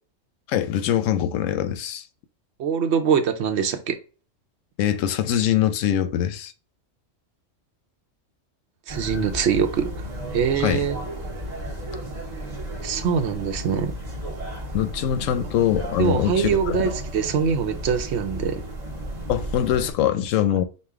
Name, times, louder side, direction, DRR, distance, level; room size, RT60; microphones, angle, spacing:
voice 1, 0.5-2.0 4.8-6.5 10.6-10.9 14.7-16.8 19.3-20.6, left 10 dB, 90° left, 1.0 m, -23 dB
voice 2, 2.6-4.0 8.9-11.0 12.8-13.9 16.0-18.6, right 7 dB, 70° right, 0.9 m, -23 dB
sound 1, 8.9-19.9, equal, 35° right, 1.0 m, -33 dB
5.2 x 2.2 x 3.5 m
omnidirectional pair, 1.3 m